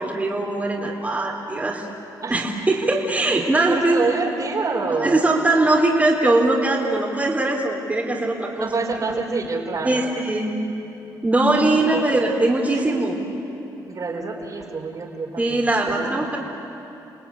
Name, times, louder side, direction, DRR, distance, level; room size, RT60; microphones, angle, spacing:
voice 1, 0.0-1.9 2.3-4.0 5.0-8.7 9.8-10.5 11.2-13.1 15.4-16.4, right 2 dB, 20° right, -2 dB, 3.7 m, -21 dB
voice 2, 3.7-5.2 8.6-10.0 11.6-12.1 12.7-13.0 13.9-16.1, right 4 dB, 50° right, 0 dB, 4.9 m, -27 dB
30.0 x 19.0 x 10.0 m, 2.9 s
cardioid pair, 70°, 8 cm